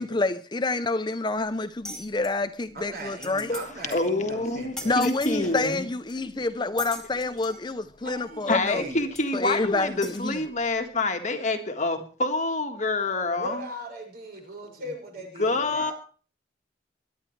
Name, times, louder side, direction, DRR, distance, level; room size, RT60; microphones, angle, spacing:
voice 1, 0.0-3.5 4.8-8.8 9.3-10.4, left 3 dB, 25° left, 0.5 m, -28 dB
sound 1, 1.8-2.3 2.8-2.9 3.1-3.6 3.9-4.1 4.8-5.4 6.1-6.2 6.8-7.6 8.5-8.6 9.1-9.2 10.0-10.2, left 1 dB, 5° left, 2.7 m, -38 dB
voice 2, 2.7-5.6 8.0-9.1 13.4-15.9, right 1 dB, 50° right, 6.2 m, -39 dB
voice 3, 3.9-5.9 8.5-13.6 15.4-15.9, left 2 dB, 40° left, 1.6 m, -27 dB
23.0 x 11.0 x 3.2 m
head